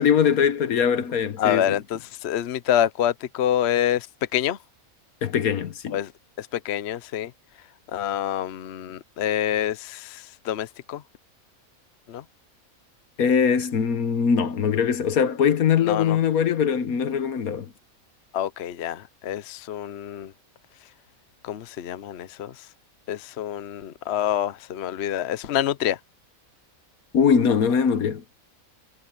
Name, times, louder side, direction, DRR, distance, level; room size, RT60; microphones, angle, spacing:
voice 1, 0.0-1.6 5.2-6.0 13.2-17.7 27.1-28.2, left 7 dB, 75° left, 1.5 m, -21 dB
voice 2, 1.4-4.1 4.3-4.6 5.9-6.1 6.4-7.3 7.9-11.0 12.1-12.2 15.8-16.2 18.3-20.3 21.4-22.5 23.1-26.0, left 10 dB, 55° left, 0.8 m, -27 dB
omnidirectional pair, 1.5 m